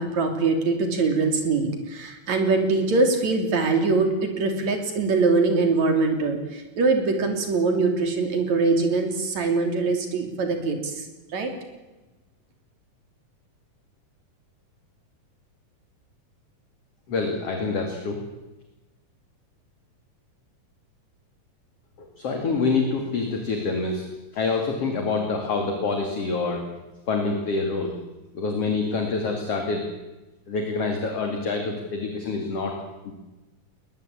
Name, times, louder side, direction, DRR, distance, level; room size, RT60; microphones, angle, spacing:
voice 1, 0.0-11.1 11.3-11.5, right 3 dB, 55° right, 5 dB, 4.5 m, -23 dB
voice 2, 17.1-18.2 22.0-24.0 24.3-26.7 27.1-28.0 28.4-29.9 30.5-32.7 33.1-33.2, left 4 dB, 50° left, 3 dB, 3.3 m, -26 dB
21.0 x 21.0 x 8.6 m, 1.1 s
omnidirectional pair, 3.8 m